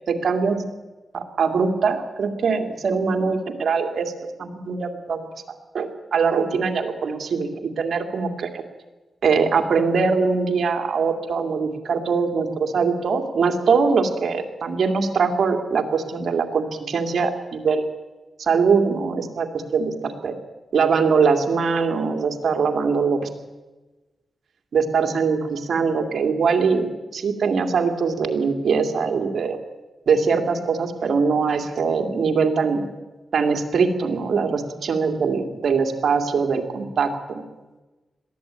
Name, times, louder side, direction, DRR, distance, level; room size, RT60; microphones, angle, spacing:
voice 1, 0.1-0.5 1.1-4.1 4.4-5.3 5.7-8.6 9.2-17.9 18.4-20.3 20.7-23.2 24.7-29.6 30.1-32.8 33.3-37.4, right 5 dB, 75° right, 6 dB, 2.5 m, -22 dB
21.5 x 15.0 x 9.0 m, 1.2 s
cardioid pair, 75°, 0 cm